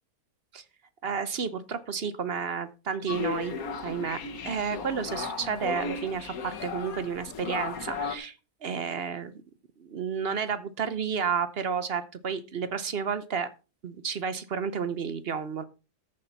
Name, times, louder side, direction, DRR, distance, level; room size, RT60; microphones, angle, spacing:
voice 1, 1.0-3.5 3.8-8.4 8.6-9.4 9.8-13.5 13.8-15.6, right 6 dB, 50° right, 13 dB, 0.8 m, -31 dB
sound 1, 3.1-8.2, left 5 dB, 60° left, 1.6 m, -35 dB
14.0 x 6.6 x 4.1 m, 0.31 s
omnidirectional pair, 1.7 m